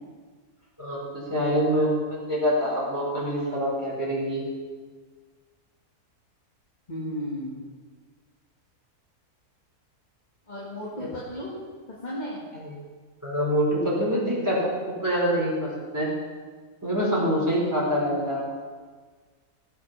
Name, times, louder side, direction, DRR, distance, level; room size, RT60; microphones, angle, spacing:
voice 1, 0.8-4.4 12.6-12.8 13.2-14.7 15.0-16.1 16.8-18.4, equal, 10° right, -5 dB, 4.8 m, -25 dB
voice 2, 6.9-7.6 10.5-11.6 12.0-12.4 17.9-18.3, left 1 dB, 30° left, -5 dB, 2.3 m, -34 dB
17.0 x 8.4 x 5.9 m, 1.5 s
omnidirectional pair, 1.6 m